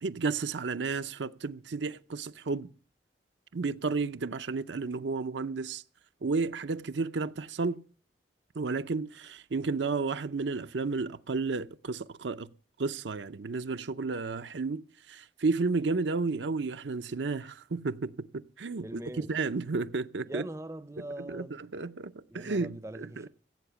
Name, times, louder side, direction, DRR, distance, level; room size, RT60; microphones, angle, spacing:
voice 1, 0.0-2.7 3.5-5.8 6.2-7.8 8.6-12.5 12.8-18.3 18.6-18.9 19.2-20.5 21.2-23.3, right 4 dB, 75° right, 0.6 m, -32 dB
voice 2, 18.8-19.3 20.3-21.6 22.3-23.3, right 1 dB, 15° right, 0.6 m, -42 dB
16.5 x 8.0 x 6.9 m
head